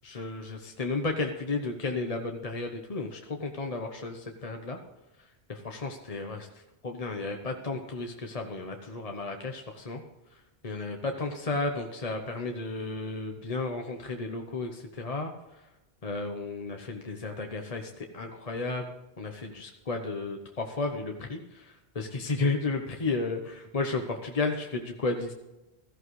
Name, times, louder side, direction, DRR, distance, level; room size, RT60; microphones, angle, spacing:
voice 1, 0.0-4.8 5.5-6.5 6.8-10.0 10.6-15.3 16.0-18.9 19.2-25.3, left 3 dB, 35° left, 3 dB, 1.0 m, -33 dB
16.0 x 14.0 x 3.2 m, 1.0 s
omnidirectional pair, 1.1 m